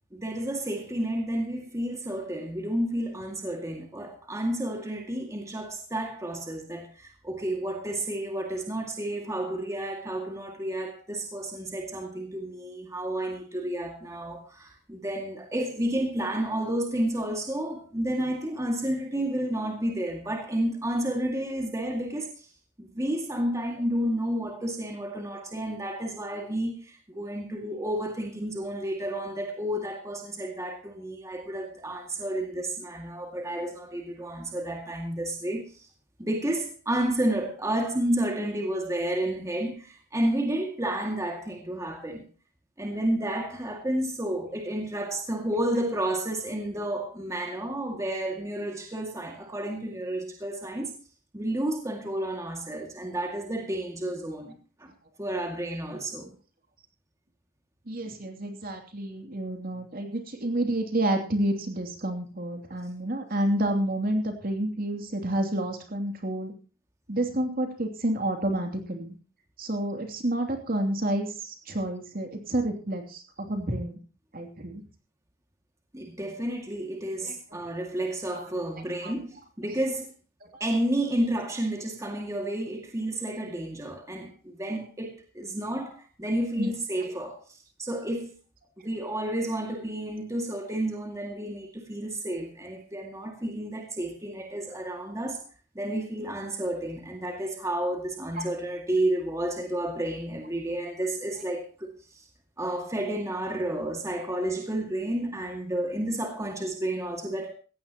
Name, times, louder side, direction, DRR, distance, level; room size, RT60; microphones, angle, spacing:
voice 1, 0.1-22.5 22.8-35.9 36.2-42.2 42.8-51.0 51.3-54.9 55.2-56.3 75.9-80.1 80.6-88.3 88.8-95.4 95.7-102.2 102.6-107.5, right 1 dB, 15° right, 2.2 m, -31 dB
voice 2, 57.9-66.5 67.1-69.2 69.6-74.0 74.3-74.8 77.2-77.6 78.3-78.5 79.0-79.1 80.4-80.6 86.6-86.7 87.0-87.1 98.4-98.5, right 1 dB, 45° right, 2.9 m, -29 dB
17.0 x 16.0 x 3.0 m
head